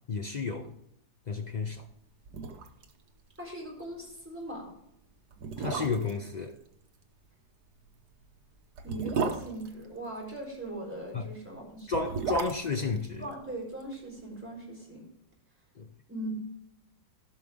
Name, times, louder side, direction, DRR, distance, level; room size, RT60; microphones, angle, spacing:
voice 1, 0.1-0.7 1.3-1.9 5.6-6.6 11.1-11.3 11.9-13.3 15.8-15.9, left 4 dB, 85° left, 0.3 m, -32 dB
sound 1, 1.9-2.0 2.2-2.9 3.2-3.3 3.7-3.9 4.6-4.7 5.3-6.2 7.8-10.4 11.7-13.9 14.2-14.3, right 5 dB, 75° right, 1.5 m, -35 dB
voice 2, 3.4-4.6 8.8-12.0 12.3-12.4 13.2-15.0 16.1-16.3, right 1 dB, 5° right, 3.9 m, -39 dB
15.5 x 6.3 x 3.5 m
omnidirectional pair, 1.8 m